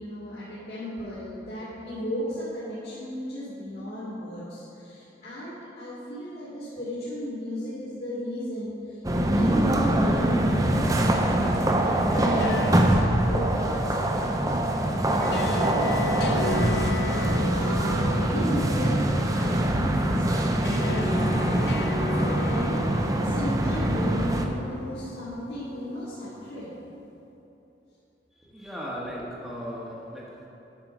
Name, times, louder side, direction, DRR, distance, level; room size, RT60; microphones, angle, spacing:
voice 1, 0.0-19.0 19.3-22.9 23.2-26.7, equal, 55° left, -11 dB, 2.1 m, -35 dB
sound 1, 9.0-24.5, right 1 dB, 20° right, 0.5 m, -24 dB
sound 2, 11.8-26.9, left 3 dB, 75° left, 0.6 m, -36 dB
voice 2, 28.4-30.5, equal, ahead, -6 dB, 1.1 m, -37 dB
8.9 x 5.6 x 5.9 m, 2.9 s
head